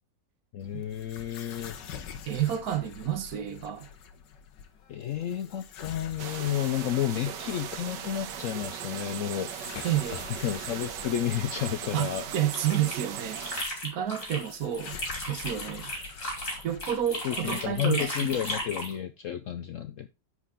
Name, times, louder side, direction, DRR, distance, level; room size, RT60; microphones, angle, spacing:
voice 1, 0.5-1.8 4.9-9.5 10.1-12.3 17.2-20.1, left 10 dB, 70° left, 0.7 m, -31 dB
sound 1, 0.6-18.7, left 7 dB, 90° left, 1.6 m, -47 dB
voice 2, 2.3-3.9 9.8-10.2 11.9-13.4 13.8-15.0 15.3-15.9 16.6-18.4, right 10 dB, 65° right, 1.3 m, -30 dB
sound 2, 6.2-13.6, right 9 dB, 85° right, 1.5 m, -38 dB
sound 3, 12.3-14.5 14.7-18.9, left 1 dB, 45° left, 3.3 m, -35 dB
9.8 x 4.9 x 3.7 m
omnidirectional pair, 1.9 m